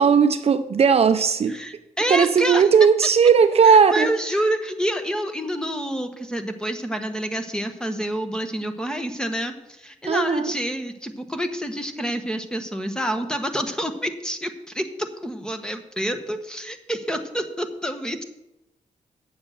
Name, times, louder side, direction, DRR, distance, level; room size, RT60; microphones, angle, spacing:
voice 1, 0.0-1.6 2.1-4.1 10.1-10.5, right 6 dB, 50° right, 10 dB, 0.6 m, -17 dB
voice 2, 1.5-2.6 3.6-18.2, right 1 dB, 5° left, 7 dB, 1.1 m, -28 dB
8.8 x 7.1 x 6.4 m, 0.91 s
cardioid pair, 95°, 13 cm